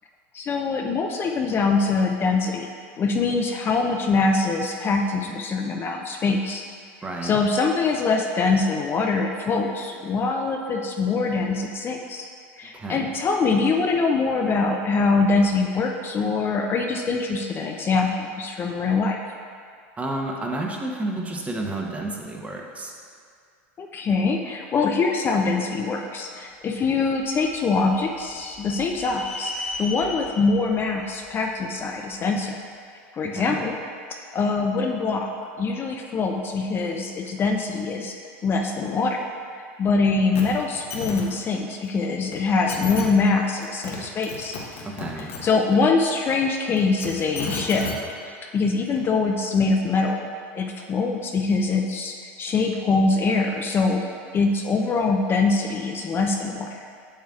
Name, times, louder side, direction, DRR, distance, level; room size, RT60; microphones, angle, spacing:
voice 1, 0.3-6.6 7.2-12.3 12.6-19.2 23.8-29.5 29.8-32.6 33.1-33.7 34.3-35.3 35.6-38.1 38.4-39.2 39.8-44.6 45.2-47.8 48.2-50.3 50.6-54.0 54.3-56.8, left 4 dB, 30° left, 2 dB, 0.5 m, -23 dB
voice 2, 7.0-7.4 12.7-13.1 20.0-22.9 33.3-33.7 44.8-45.3, right 2 dB, 20° right, 0 dB, 0.9 m, -31 dB
sound 1, 27.0-32.2, left 2 dB, 10° left, 1.4 m, -37 dB
sound 2, 40.3-40.4 40.7-41.2 42.3-42.4 42.7-43.0 43.6-44.0 44.2-45.4 46.8-47.9 49.0-49.1, left 4 dB, 80° left, 1.2 m, -32 dB
7.2 x 7.2 x 2.5 m, 2.2 s
hypercardioid pair, 100°, 7 cm